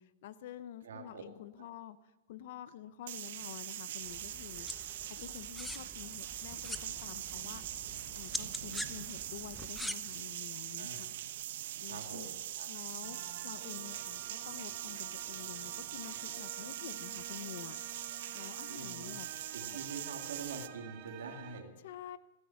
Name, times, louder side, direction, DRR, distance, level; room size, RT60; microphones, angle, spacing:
voice 1, 0.0-2.0 2.3-4.7 5.0-7.6 8.1-11.1 11.8-12.3 12.7-13.2 13.4-17.8 18.3-19.3 21.8-22.2, left 12 dB, 60° left, 16 dB, 0.8 m, -48 dB
voice 2, 0.8-1.2 10.8-11.0 11.9-12.7 18.7-19.2 19.5-21.7, right 4 dB, 90° right, 3 dB, 2.3 m, -45 dB
sound 1, 3.1-20.7, right 12 dB, 65° right, 0.8 m, -42 dB
sound 2, 4.0-9.9, left 1 dB, 5° left, 0.7 m, -45 dB
sound 3, 13.0-21.6, right 11 dB, 45° right, 1.3 m, -51 dB
16.0 x 13.0 x 5.9 m, 1.1 s
hypercardioid pair, 145°, 0 cm